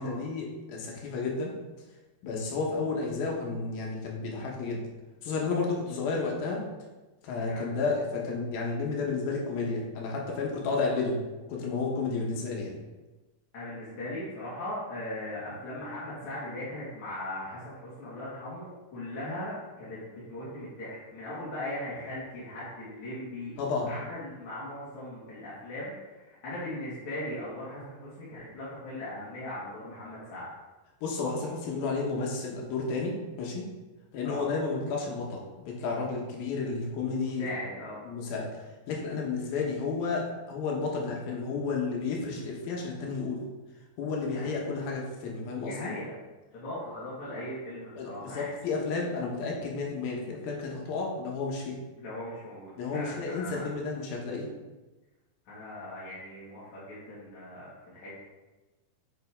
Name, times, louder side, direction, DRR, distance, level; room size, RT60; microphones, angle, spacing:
voice 1, 0.0-1.5 2.2-4.8 5.2-6.6 7.2-11.2 11.5-12.8 23.6-23.9 31.0-33.6 34.1-37.5 38.1-38.5 38.9-43.4 44.0-45.9 48.0-51.7 52.8-54.5, left 4 dB, 75° left, -2 dB, 3.0 m, -32 dB
voice 2, 13.5-23.5 23.8-30.5 34.2-34.4 37.0-38.0 44.3-44.6 45.6-46.2 46.5-48.5 52.0-53.7 55.4-58.2, left 1 dB, 55° left, -10 dB, 3.0 m, -39 dB
8.8 x 5.3 x 3.6 m, 1.2 s
omnidirectional pair, 4.3 m